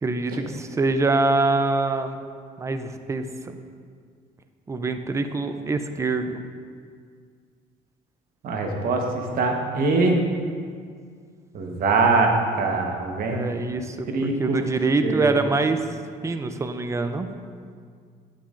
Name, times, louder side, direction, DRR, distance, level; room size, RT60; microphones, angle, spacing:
voice 1, 0.0-2.2 2.6-3.6 4.7-6.4 13.3-15.8 16.2-17.3, right 3 dB, 15° right, 8 dB, 0.5 m, -25 dB
voice 2, 8.4-10.2 11.5-12.3 12.6-13.4 14.1-14.7 15.0-15.4, right 3 dB, 60° right, 2 dB, 1.2 m, -23 dB
9.4 x 8.8 x 2.5 m, 2.1 s
cardioid pair, 110°, 17 cm